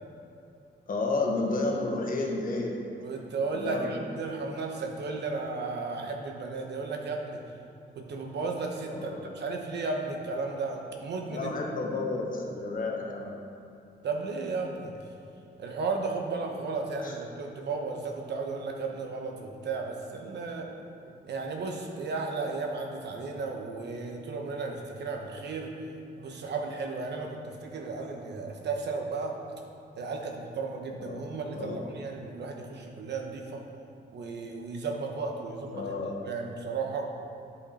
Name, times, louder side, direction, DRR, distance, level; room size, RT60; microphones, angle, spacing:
voice 1, 0.9-2.8 3.5-4.0 8.9-9.2 11.3-13.3 17.0-17.1 31.0-31.2 31.5-31.8 35.7-36.2, left 3 dB, 50° left, 0 dB, 1.1 m, -31 dB
voice 2, 3.0-7.4 8.0-11.5 14.0-14.9 15.6-20.7 21.0-25.7 26.2-29.4 30.0-33.6 34.1-35.8 36.3-37.1, right 4 dB, 70° right, 2 dB, 1.1 m, -34 dB
11.0 x 5.3 x 4.3 m, 2.7 s
wide cardioid pair, 145°, 18 cm